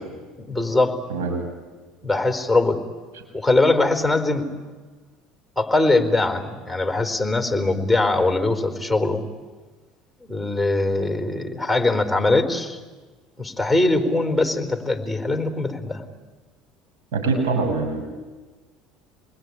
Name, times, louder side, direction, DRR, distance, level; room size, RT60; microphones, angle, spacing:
voice 1, 0.4-1.0 2.0-2.8 3.3-4.5 5.6-9.2 10.2-12.8 13.4-16.0, left 2 dB, 5° right, 7 dB, 4.2 m, -21 dB
voice 2, 1.1-1.4 17.1-18.0, right 3 dB, 75° right, 4 dB, 6.9 m, -23 dB
28.0 x 21.0 x 9.9 m, 1.3 s
hypercardioid pair, 80°, 0 cm